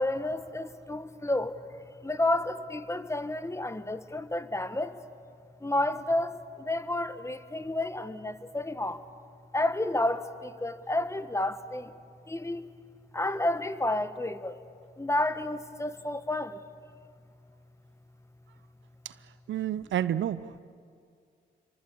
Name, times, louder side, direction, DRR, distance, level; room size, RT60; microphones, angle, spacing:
voice 1, 0.0-1.6 2.0-5.0 5.6-9.0 9.5-11.9 12.3-12.7 13.1-14.6 15.0-16.6, left 1 dB, 15° left, 12 dB, 1.4 m, -30 dB
voice 2, 19.5-20.6, right 11 dB, 70° right, 16 dB, 0.7 m, -30 dB
28.0 x 23.5 x 8.6 m, 2.3 s
cardioid pair, 65°, 20 cm